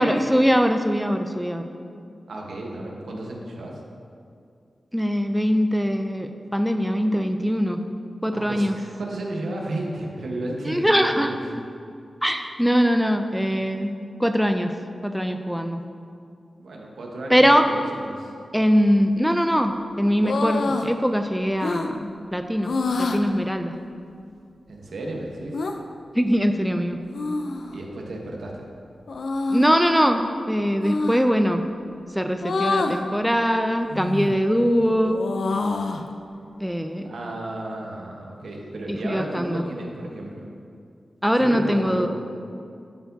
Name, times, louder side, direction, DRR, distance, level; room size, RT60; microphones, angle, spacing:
voice 1, 0.0-1.7 4.9-7.8 8.2-8.8 10.7-11.3 12.2-13.9 14.2-14.7 15.0-15.8 17.3-17.6 18.5-22.7 23.0-23.7 26.2-27.0 29.5-31.6 32.2-35.2 36.6-37.1 38.9-39.6 41.2-42.1, equal, ahead, 6 dB, 0.3 m, -22 dB
voice 2, 2.3-3.8 8.3-11.5 16.6-18.3 24.7-25.6 27.7-28.7 37.0-40.5 41.4-42.1, right 1 dB, 80° right, -1 dB, 1.0 m, -33 dB
sound 1, 20.2-20.9 21.6-21.9 22.6-23.2 25.5-25.7 27.1-27.8 29.1-29.7 30.8-31.2 32.4-33.0 33.9-34.4 34.8-36.1, left 3 dB, 75° left, 0.4 m, -26 dB
12.0 x 4.5 x 2.7 m, 2.4 s
wide cardioid pair, 120°, 0 cm